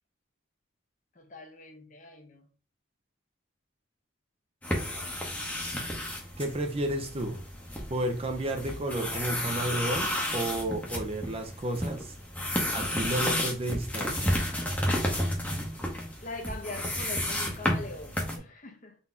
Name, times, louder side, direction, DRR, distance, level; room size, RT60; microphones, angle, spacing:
voice 1, 1.2-2.4 8.4-8.5 16.2-19.0, left 2 dB, 40° left, 0.8 m, -42 dB
sound 1, 4.6-18.4, left 1 dB, 5° left, 0.8 m, -32 dB
voice 2, 6.4-7.4 7.9-12.1 12.7-14.3, right 1 dB, 30° right, 0.5 m, -32 dB
4.0 x 2.8 x 3.6 m
head